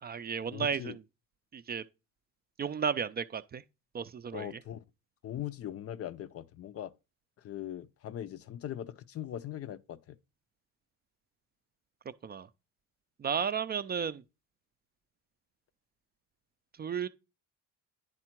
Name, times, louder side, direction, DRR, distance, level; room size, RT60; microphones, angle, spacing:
voice 1, 0.0-1.0 1.5-1.8 2.6-3.6 3.9-4.5 12.2-12.5 13.2-14.2 16.8-17.1, right 7 dB, 30° right, 0.4 m, -33 dB
voice 2, 0.5-1.0 4.3-4.8 5.2-6.9 7.4-10.2, left 11 dB, 45° left, 0.5 m, -40 dB
9.7 x 3.5 x 4.5 m
supercardioid pair, 80°, 33 cm